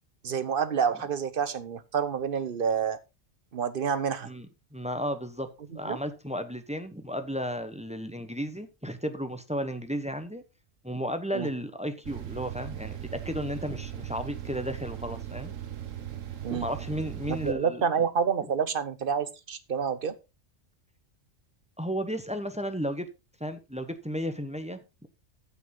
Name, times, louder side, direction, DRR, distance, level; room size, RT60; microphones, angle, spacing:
voice 1, 0.2-3.0 3.5-4.3 5.9-6.0 11.3-11.5 16.4-16.7 17.3-20.1, right 7 dB, 50° right, 1.1 m, -28 dB
voice 2, 4.7-5.5 5.7-10.4 10.8-15.5 16.5-17.8 18.4-18.5 21.8-23.1 23.4-25.1, equal, 5° right, 0.9 m, -34 dB
sound 1, 12.0-17.5, right 11 dB, 85° right, 1.4 m, -38 dB
14.0 x 5.9 x 3.9 m
omnidirectional pair, 1.3 m